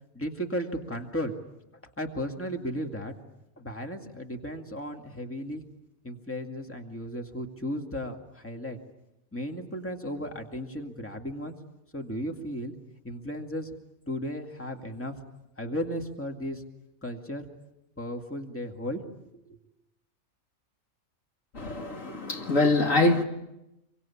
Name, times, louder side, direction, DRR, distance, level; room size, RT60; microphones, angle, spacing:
voice 1, 0.1-1.3 2.0-3.1 3.6-5.6 6.0-8.8 9.3-11.6 11.9-12.7 13.0-13.7 14.1-15.2 15.6-16.6 17.0-17.4 18.0-19.0 19.3-19.6, equal, 10° left, 2.2 m, -35 dB
voice 2, 21.5-23.2, left 2 dB, 70° left, 2.5 m, -24 dB
27.0 x 24.0 x 8.6 m
omnidirectional pair, 1.4 m